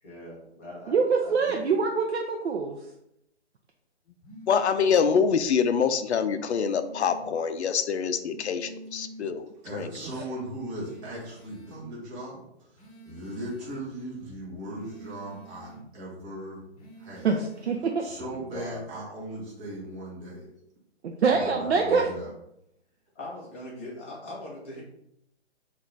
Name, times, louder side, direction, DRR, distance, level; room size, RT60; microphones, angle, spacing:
voice 1, 0.0-1.5 18.3-18.9 21.3-22.1 23.1-24.8, left 1 dB, 10° left, -5 dB, 0.4 m, -41 dB
voice 2, 0.9-2.8 10.0-10.1 17.2-18.0 21.0-22.1, right 5 dB, 70° right, 2 dB, 0.5 m, -25 dB
sound 1, 4.2-5.3 6.2-7.3 8.2-9.3 10.8-11.8 12.8-13.8 14.8-15.8 16.8-17.8, right 1 dB, 35° left, 0.9 m, -47 dB
voice 3, 4.5-9.9, left 6 dB, 70° left, 10 dB, 0.5 m, -25 dB
voice 4, 9.6-12.4 12.7-12.8 13.0-16.6 17.0-17.3 18.0-20.5 21.3-22.3, right 1 dB, 20° right, -6 dB, 0.9 m, -38 dB
3.8 x 2.5 x 3.3 m, 0.78 s
figure-of-eight pair, 140°, 34 cm